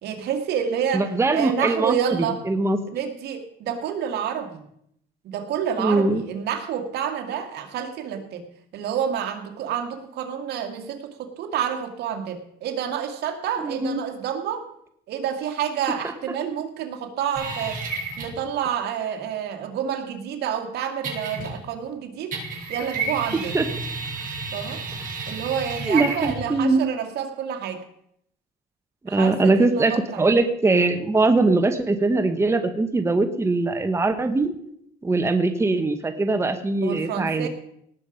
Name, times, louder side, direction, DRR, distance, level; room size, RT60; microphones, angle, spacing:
voice 1, 0.0-2.4 2.9-4.6 5.2-8.4 8.7-14.6 15.1-17.8 18.2-22.3 22.7-23.6 24.5-24.8 25.3-27.8 29.1-30.3 36.8-37.5, right 8 dB, 75° right, 5 dB, 2.2 m, -28 dB
voice 2, 0.9-2.8 5.8-6.2 13.6-14.0 23.5-23.6 24.9-25.1 25.9-26.9 29.0-34.5 35.0-37.5, right 3 dB, 15° right, 8 dB, 1.1 m, -21 dB
sound 1, 17.3-18.4 21.0-21.8 22.3-26.5, right 3 dB, 55° right, 6.9 m, -31 dB
18.5 x 7.3 x 5.1 m, 0.73 s
cardioid pair, 110°, 17 cm